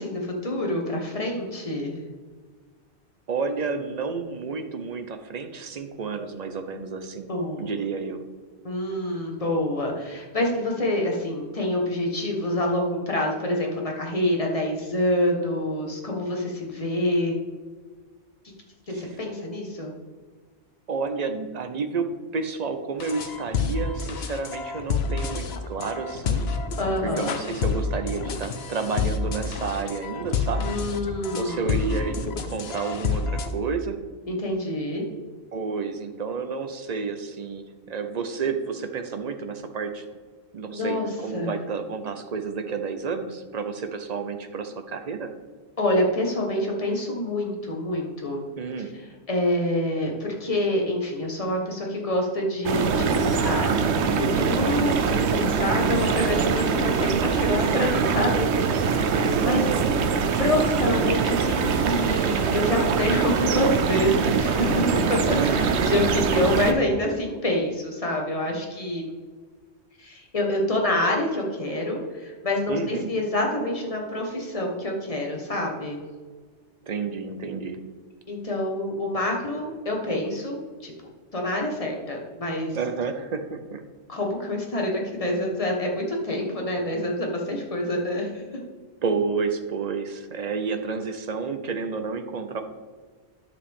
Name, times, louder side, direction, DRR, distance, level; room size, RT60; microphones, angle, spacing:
voice 1, 0.0-1.9 6.2-6.3 7.3-7.7 8.6-17.3 18.9-19.9 26.8-27.4 30.6-32.2 34.3-35.0 40.7-41.5 45.8-48.4 48.8-48.9 49.3-53.8 54.2-59.7 60.4-69.0 70.0-76.0 78.3-80.9 81.3-82.8 84.1-88.4, left 1 dB, 30° left, 0 dB, 1.4 m, -27 dB
voice 2, 3.3-7.3 7.6-8.2 18.9-19.0 20.9-26.5 27.0-30.7 31.3-34.0 35.5-40.0 40.5-45.3 48.6-48.9 59.0-59.8 65.3-65.7 72.7-73.1 76.8-77.8 82.7-83.8 89.0-92.6, right 5 dB, 45° right, 8 dB, 0.7 m, -30 dB
sound 1, 23.0-33.5, left 5 dB, 70° left, 1.0 m, -29 dB
sound 2, 52.6-66.7, right 5 dB, 80° right, 1.0 m, -23 dB
10.0 x 6.9 x 3.6 m, 1.5 s
omnidirectional pair, 1.1 m